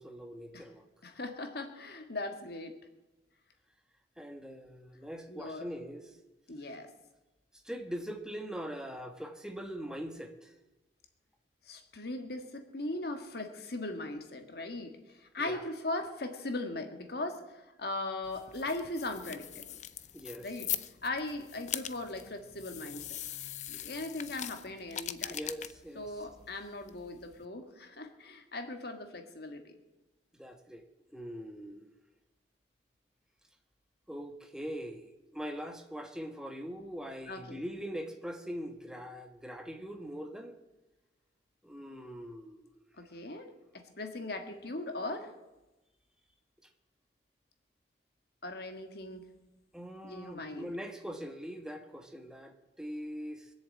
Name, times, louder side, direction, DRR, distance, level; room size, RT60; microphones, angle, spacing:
voice 1, 0.0-0.8 4.2-6.1 7.6-10.5 15.4-15.6 20.1-20.5 25.3-26.1 30.3-30.8 31.1-31.9 34.1-40.6 41.6-42.6 49.7-53.5, equal, 5° right, 5 dB, 1.3 m, -42 dB
voice 2, 1.0-2.7 5.3-5.7 6.5-6.9 11.7-19.8 20.4-20.7 21.0-23.2 23.7-25.4 25.9-29.8 37.3-37.6 43.0-45.3 48.4-49.3 50.0-50.7, left 2 dB, 60° left, 6 dB, 1.8 m, -39 dB
sound 1, 18.2-27.5, left 11 dB, 40° left, 0.6 m, -42 dB
22.0 x 7.3 x 8.5 m, 1.0 s
head